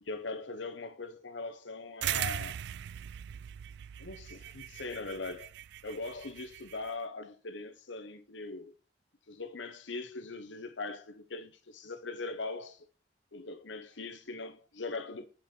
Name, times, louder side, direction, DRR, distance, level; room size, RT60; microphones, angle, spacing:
voice 1, 0.0-2.6 4.0-5.5 5.8-8.7 9.3-12.8 13.3-15.3, left 3 dB, 75° left, 1.0 m, -41 dB
sound 1, 2.0-6.9, right 11 dB, 65° right, 0.3 m, -39 dB
6.8 x 5.7 x 4.5 m
head